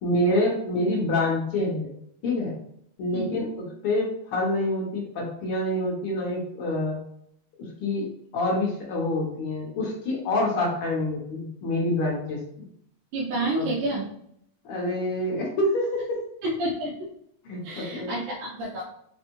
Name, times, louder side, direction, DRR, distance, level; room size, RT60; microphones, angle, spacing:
voice 1, 0.0-1.9 2.2-2.5 3.0-7.0 7.8-8.1 8.3-12.4 13.5-13.6 14.6-16.2 17.5-18.1, left 1 dB, 60° left, -2 dB, 1.5 m, -26 dB
voice 2, 13.1-14.0 16.4-16.9 17.6-18.8, right 1 dB, 80° right, -6 dB, 2.3 m, -29 dB
5.2 x 2.3 x 3.0 m, 0.70 s
omnidirectional pair, 3.5 m